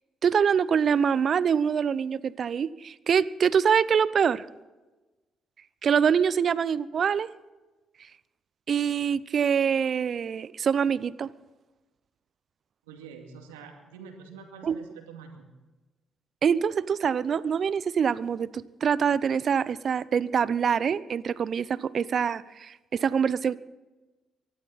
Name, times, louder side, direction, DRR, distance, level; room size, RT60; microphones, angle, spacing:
voice 1, 0.2-4.4 5.8-7.3 8.7-11.3 14.6-14.8 16.4-23.6, right 7 dB, 55° right, 19 dB, 0.7 m, -25 dB
voice 2, 12.9-15.5, right 6 dB, 85° right, 3 dB, 2.3 m, -46 dB
24.0 x 12.0 x 4.2 m, 1.1 s
hypercardioid pair, 45°, 0 cm